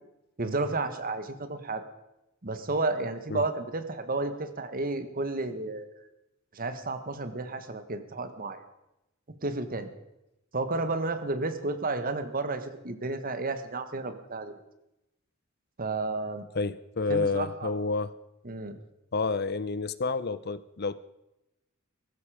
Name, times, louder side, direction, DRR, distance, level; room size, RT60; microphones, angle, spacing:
voice 1, 0.4-1.8 2.4-5.9 6.5-8.6 9.4-9.9 10.5-14.5 15.8-16.4 17.1-17.7 18.4-18.8, right 3 dB, 45° right, 9 dB, 1.5 m, -32 dB
voice 2, 16.5-18.1 19.1-20.9, left 4 dB, 50° left, 16 dB, 0.7 m, -29 dB
17.5 x 15.0 x 5.0 m, 0.89 s
head